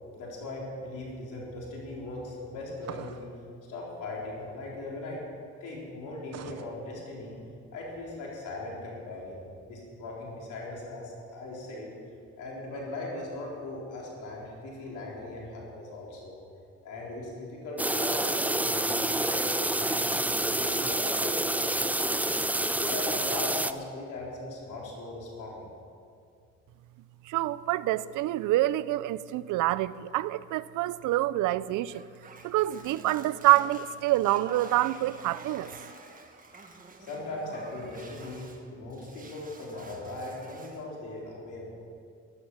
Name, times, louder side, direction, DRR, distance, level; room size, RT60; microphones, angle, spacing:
voice 1, 0.1-3.3 3.7-5.2 5.6-7.4 7.7-11.9 12.4-16.3 16.8-25.7 37.0-41.7, left 2 dB, 85° left, 4.1 m, -39 dB
sound 1, 2.8-3.4 6.3-6.7, right 8 dB, 60° right, 0.8 m, -42 dB
sound 2, 17.8-23.7, right 1 dB, 5° right, 0.5 m, -28 dB
voice 2, 27.3-32.0 32.4-35.7, right 16 dB, 85° right, 0.5 m, -26 dB
sound 3, 31.9-38.6 38.9-40.9, right 3 dB, 30° right, 1.6 m, -48 dB
13.5 x 12.0 x 6.2 m
cardioid pair, 90°, 30 cm